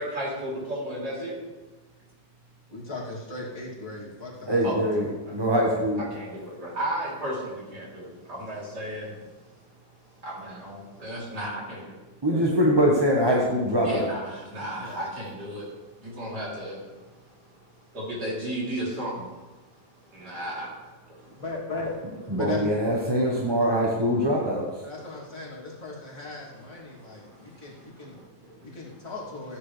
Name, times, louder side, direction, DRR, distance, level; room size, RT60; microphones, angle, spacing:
voice 1, 0.0-1.4 4.6-4.9 5.3-5.4 6.0-9.2 10.2-11.9 12.3-12.4 13.8-15.7 16.0-17.0 17.9-19.3 20.1-21.4 22.3-22.5 26.9-28.5, right 1 dB, 60° right, -6 dB, 4.1 m, -34 dB
voice 2, 2.7-4.6 5.0-5.1 14.7-15.0 21.3-21.9 22.3-22.7 23.2-23.5 24.8-28.2 28.6-29.6, left 2 dB, 45° left, -7 dB, 3.3 m, -37 dB
voice 3, 4.5-6.0 12.2-14.1 22.3-24.8, equal, 15° right, -2 dB, 0.9 m, -23 dB
15.5 x 8.9 x 3.4 m, 1.2 s
omnidirectional pair, 2.0 m